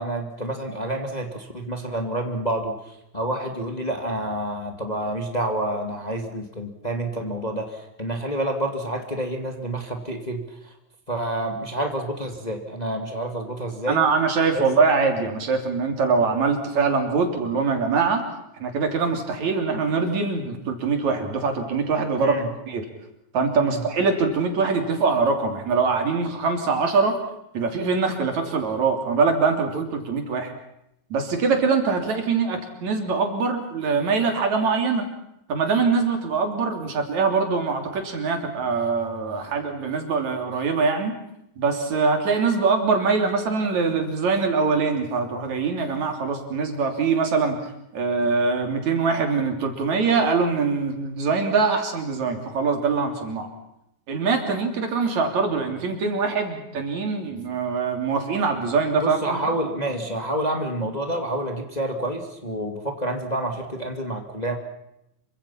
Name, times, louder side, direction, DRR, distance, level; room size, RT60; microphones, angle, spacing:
voice 1, 0.0-10.4 11.1-14.0 14.5-14.6 22.2-22.5 23.6-23.8 59.0-64.6, right 1 dB, 15° left, 4 dB, 2.2 m, -28 dB
voice 2, 13.9-18.2 18.6-22.8 23.3-27.2 27.5-30.5 31.1-35.0 35.5-41.1 41.6-47.6 47.9-53.5 54.1-59.4, right 4 dB, 70° right, 4 dB, 4.4 m, -23 dB
27.0 x 24.5 x 5.8 m, 0.82 s
omnidirectional pair, 3.3 m